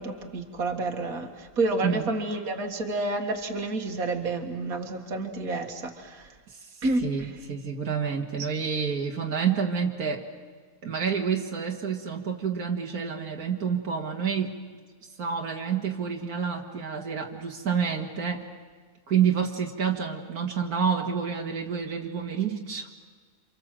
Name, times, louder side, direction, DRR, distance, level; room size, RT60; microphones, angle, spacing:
voice 1, 0.0-6.3 6.8-7.3, right 2 dB, 70° right, 4 dB, 2.3 m, -29 dB
voice 2, 7.0-10.3 10.8-14.6 15.2-18.5 19.1-22.9, right 7 dB, 90° right, 1 dB, 2.3 m, -28 dB
28.5 x 27.0 x 7.7 m, 1.5 s
omnidirectional pair, 1.5 m